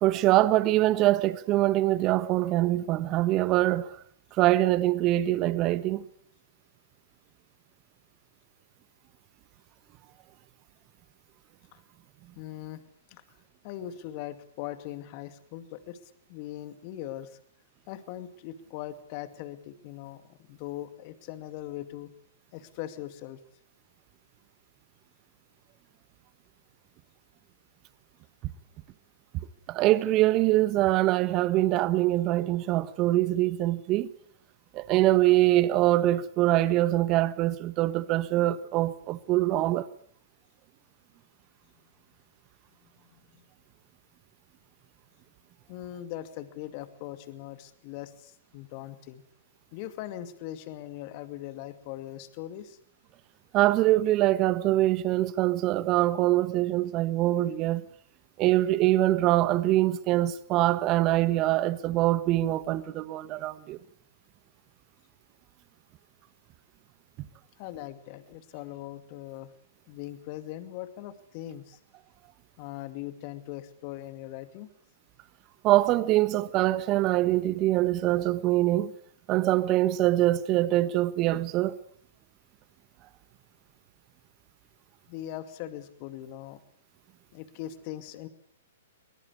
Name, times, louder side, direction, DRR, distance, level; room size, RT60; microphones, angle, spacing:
voice 1, 0.0-3.9 4.4-6.0 29.7-34.1 34.7-39.9 53.5-57.8 58.4-63.8 75.6-78.9 79.3-81.8, right 15 dB, 35° right, 1.3 m, -24 dB
voice 2, 12.4-12.8 13.1-13.2 13.6-16.0 16.3-17.3 17.9-22.1 22.5-23.4 43.1-43.2 45.7-49.2 49.7-52.8 67.6-69.5 69.9-71.8 72.6-74.7 85.1-86.6 87.3-88.3, left 13 dB, 40° left, 2.3 m, -40 dB
23.0 x 20.5 x 8.2 m
figure-of-eight pair, 115°, 0 cm